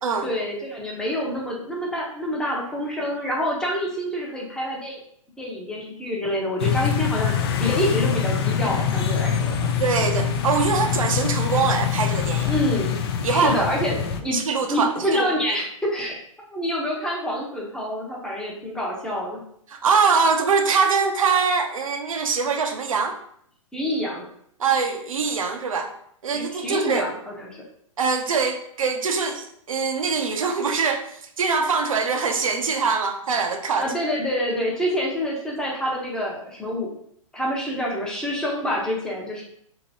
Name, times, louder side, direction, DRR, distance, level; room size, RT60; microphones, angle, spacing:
voice 1, 0.2-5.0 5.4-9.7 12.5-13.0 13.3-14.4 14.6-16.2 16.5-19.4 23.7-24.3 26.3-27.6 33.8-36.9 37.3-39.4, equal, 5° left, -3 dB, 0.7 m, -27 dB
sound 1, 6.6-14.2, left 8 dB, 45° left, 0.4 m, -24 dB
voice 2, 9.8-12.5 13.2-13.7 14.3-15.6 19.7-23.2 24.6-25.9 26.2-27.1 28.0-31.1 31.4-33.9, right 5 dB, 75° right, 4 dB, 0.6 m, -23 dB
2.9 x 2.8 x 2.7 m, 0.67 s
hypercardioid pair, 120°, 17 cm